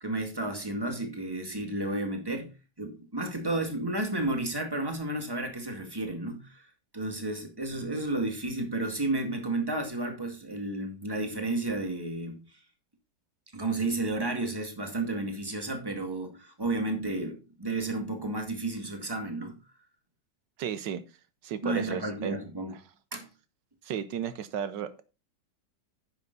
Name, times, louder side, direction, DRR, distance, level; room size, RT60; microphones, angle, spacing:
voice 1, 0.0-6.7 6.9-12.4 13.5-19.6 21.6-22.7 23.1-23.3, right 2 dB, 15° right, 2.0 m, -32 dB
voice 2, 20.6-21.0 21.4-22.4 23.8-25.0, right 8 dB, 85° right, 1.5 m, -33 dB
10.0 x 7.1 x 4.0 m
omnidirectional pair, 1.9 m